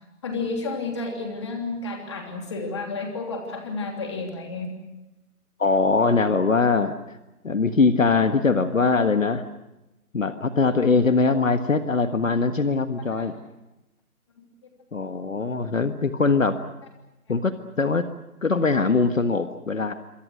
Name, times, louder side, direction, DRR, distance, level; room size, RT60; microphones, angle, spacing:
voice 1, 0.2-4.7 13.2-13.3 14.4-14.5, left 3 dB, 20° left, 3 dB, 3.0 m, -31 dB
voice 2, 5.6-7.0 7.4-9.4 10.1-13.3 14.9-16.6 17.3-18.1 18.4-19.9, left 4 dB, 60° left, 9 dB, 1.6 m, -22 dB
26.5 x 26.5 x 6.4 m, 0.97 s
figure-of-eight pair, 175°, 45 cm